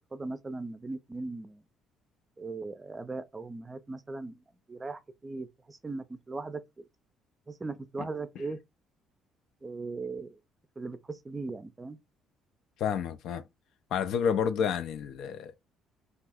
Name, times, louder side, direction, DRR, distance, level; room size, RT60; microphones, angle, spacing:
voice 1, 0.1-1.6 2.4-6.9 7.5-8.6 9.6-10.4 10.8-12.0, right 3 dB, 25° right, 0.4 m, -39 dB
voice 2, 12.8-13.4 13.9-15.5, left 7 dB, 60° left, 0.3 m, -29 dB
2.6 x 2.4 x 3.3 m
hypercardioid pair, 50°, 0 cm